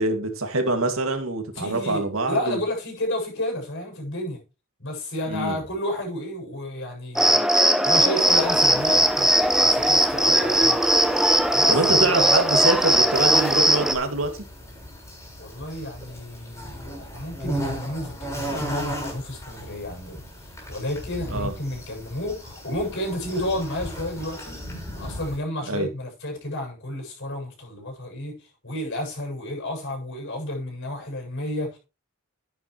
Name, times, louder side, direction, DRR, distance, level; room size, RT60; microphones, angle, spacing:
voice 1, 0.0-2.6 5.3-5.6 11.7-14.3 21.3-21.5 25.7-25.9, right 2 dB, 70° right, 2.4 m, -25 dB
voice 2, 1.6-4.4 4.8-7.4 7.8-10.8 11.5-12.1 15.4-20.2 20.7-24.6 24.9-28.4 28.6-31.8, left 1 dB, 60° left, 7.7 m, -31 dB
Cricket, 7.2-13.9, right 1 dB, ahead, 1.3 m, -19 dB
sound 1, 8.2-25.4, equal, 15° left, 7.6 m, -37 dB
10.5 x 10.5 x 3.2 m
head